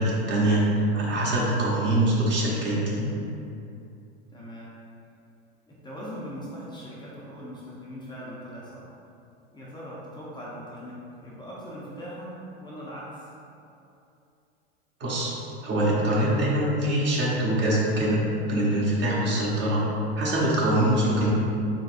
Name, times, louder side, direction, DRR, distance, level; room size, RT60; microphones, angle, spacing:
voice 1, 0.0-3.1 15.0-15.4 15.6-19.9 20.2-21.3, right 1 dB, 35° right, -5 dB, 1.0 m, -24 dB
voice 2, 4.3-4.7 5.7-8.9 9.5-13.3, equal, 15° left, -7 dB, 0.6 m, -40 dB
4.0 x 3.9 x 2.5 m, 2.7 s
hypercardioid pair, 100°, 32 cm